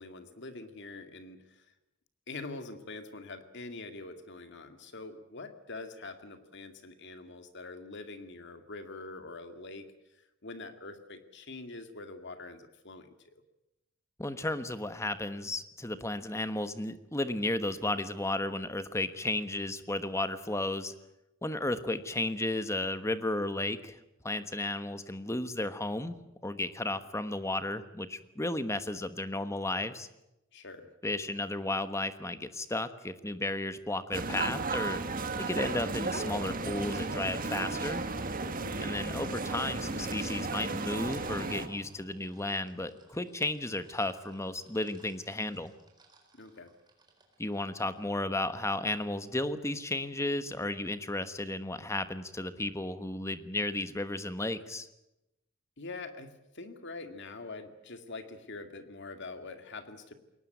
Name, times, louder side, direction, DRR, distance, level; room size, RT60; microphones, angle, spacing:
voice 1, 0.0-1.7 2.3-9.9 10.1-13.4 30.5-30.9 38.6-39.0 46.3-46.7 55.8-60.1, left 3 dB, 55° left, 8 dB, 2.2 m, -44 dB
voice 2, 14.2-20.9 21.4-24.0 24.2-26.2 26.4-30.1 31.0-35.0 35.4-38.0 38.8-45.7 47.4-54.9, left 2 dB, 15° left, 11 dB, 1.2 m, -33 dB
sound 1, 34.1-41.7, right 3 dB, 40° right, 1.8 m, -34 dB
sound 2, 36.4-48.0, right 1 dB, 20° right, 4.2 m, -50 dB
22.0 x 19.0 x 9.2 m, 0.90 s
head